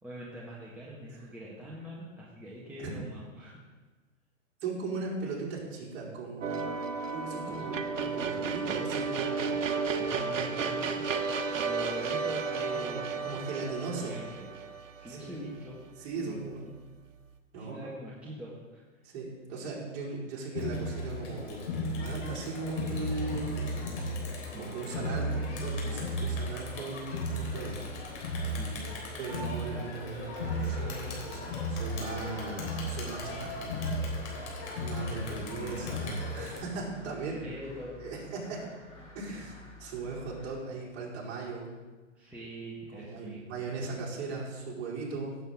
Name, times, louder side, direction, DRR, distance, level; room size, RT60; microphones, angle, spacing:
voice 1, 0.0-3.6 7.3-7.6 9.8-11.0 11.5-13.6 14.0-14.5 14.9-15.8 16.2-16.7 17.5-18.8 24.4-26.3 28.4-29.0 35.2-35.9 37.0-38.0 39.2-39.4 42.2-43.4, right 1 dB, 5° right, -7 dB, 1.7 m, -44 dB
voice 2, 4.6-6.7 7.1-9.6 10.0-10.9 12.7-14.2 15.1-15.5 16.0-16.6 17.5-17.9 19.0-23.9 24.5-27.8 29.2-34.1 34.8-37.4 38.0-38.6 39.1-39.5 39.8-41.7 42.9-45.3, right 4 dB, 35° right, -5 dB, 4.3 m, -38 dB
sound 1, 6.4-15.6, right 5 dB, 75° right, 1.2 m, -33 dB
Crowd, 20.5-36.6, left 1 dB, 65° left, 3.8 m, -35 dB
sound 2, 29.5-40.5, left 2 dB, 15° left, 3.8 m, -51 dB
16.5 x 8.0 x 3.8 m, 1.3 s
hypercardioid pair, 120°, 39 cm